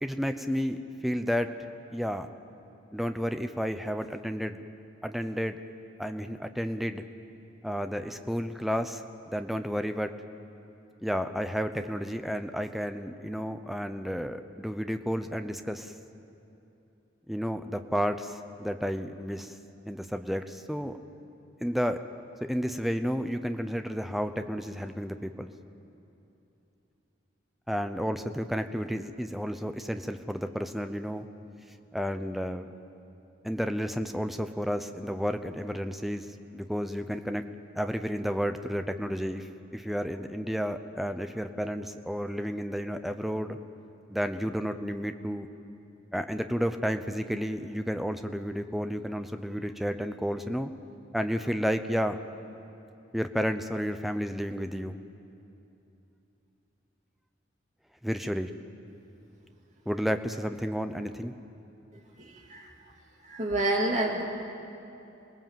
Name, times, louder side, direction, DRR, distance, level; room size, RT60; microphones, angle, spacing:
voice 1, 0.0-1.5 1.9-2.3 2.9-4.6 5.0-5.6 6.0-7.0 7.6-10.1 11.0-15.9 17.3-19.5 19.8-20.9 21.6-22.0 22.5-25.5 27.7-31.3 31.9-32.7 33.4-36.3 36.5-37.4 37.8-43.6 44.1-45.5 46.1-50.7 51.1-52.2 53.1-55.0 58.0-58.5 59.9-61.3, equal, ahead, 7 dB, 0.7 m, -31 dB
voice 2, 62.2-62.7 63.3-64.2, right 1 dB, 40° right, -1 dB, 2.8 m, -28 dB
27.5 x 19.0 x 7.6 m, 2.9 s
head